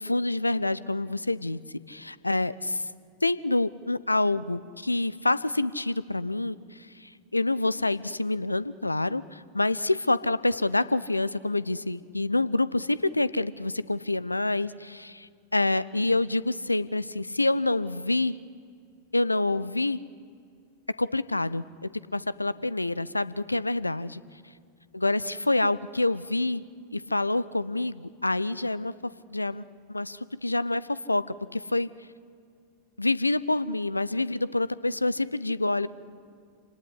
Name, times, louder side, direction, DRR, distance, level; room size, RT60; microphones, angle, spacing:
voice 1, 0.0-1.6 1.9-2.8 3.2-18.4 19.1-20.0 21.0-24.2 24.9-26.6 26.9-31.9 33.0-35.9, left 2 dB, 85° left, 18 dB, 0.6 m, -27 dB
27.5 x 18.5 x 9.9 m, 2.3 s
figure-of-eight pair, 90°, 0 cm